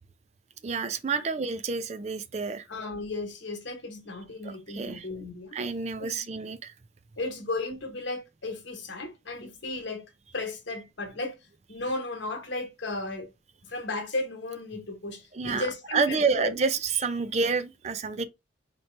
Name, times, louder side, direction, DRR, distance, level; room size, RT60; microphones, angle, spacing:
voice 1, 0.6-2.7 4.4-5.1 5.5-6.7 15.3-18.2, right 4 dB, 35° right, 0.4 m, -29 dB
voice 2, 2.7-5.6 6.0-6.3 7.2-10.0 10.3-11.3 11.7-13.3 13.7-16.5, left 2 dB, 75° left, 1.2 m, -35 dB
4.3 x 2.9 x 3.2 m
head